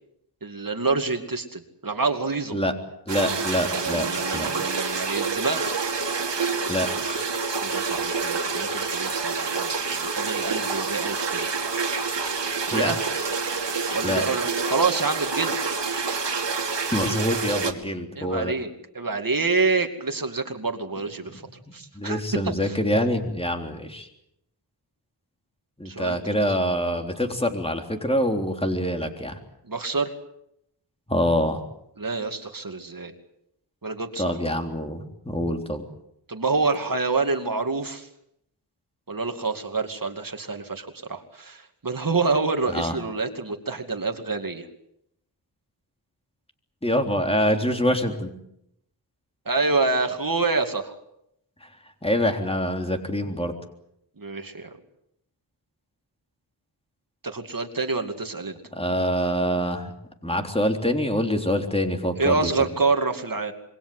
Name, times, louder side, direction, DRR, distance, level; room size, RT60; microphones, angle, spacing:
voice 1, 0.4-2.6 3.7-5.8 7.6-11.5 12.7-13.0 13.9-15.6 18.2-21.4 21.7-22.2 22.6-22.8 25.8-26.2 29.7-30.1 32.0-33.1 33.8-34.6 36.3-38.1 39.1-44.7 49.5-50.9 54.2-54.7 57.2-58.6 62.2-63.5, right 3 dB, 50° right, 6 dB, 2.5 m, -27 dB
voice 2, 3.1-4.1 4.3-4.5 6.7-6.9 12.7-12.9 14.0-14.2 16.9-18.5 21.9-24.1 25.8-29.4 31.1-31.6 34.2-35.8 42.7-42.9 46.8-48.3 52.0-53.5 58.7-59.9 60.2-62.5, equal, 15° left, 4 dB, 3.6 m, -25 dB
sound 1, 3.1-17.7, right 5 dB, 80° right, 2.7 m, -27 dB
26.5 x 22.5 x 7.9 m, 0.78 s
wide cardioid pair, 80°, 42 cm